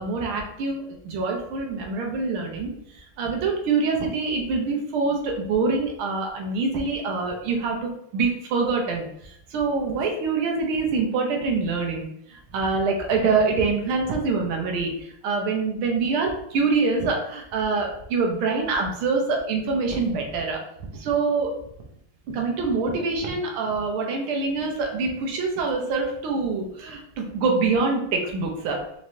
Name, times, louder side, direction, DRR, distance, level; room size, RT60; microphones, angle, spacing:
voice 1, 0.0-20.6 20.9-21.5 22.3-28.8, right 4 dB, 80° right, 1 dB, 1.7 m, -25 dB
5.0 x 3.0 x 2.7 m, 0.72 s
omnidirectional pair, 2.3 m